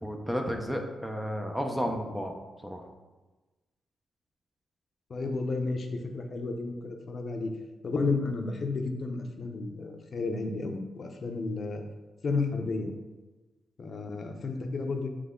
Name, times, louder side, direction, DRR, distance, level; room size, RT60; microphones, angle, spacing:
voice 1, 0.0-2.3 2.6-2.9, equal, 5° right, 3 dB, 0.8 m, -32 dB
voice 2, 5.1-5.9 6.1-7.5 7.8-11.8 12.2-12.9 13.8-15.1, left 3 dB, 45° left, 4 dB, 0.8 m, -32 dB
7.9 x 3.3 x 3.9 m, 1.2 s
cardioid pair, 110°, 0 cm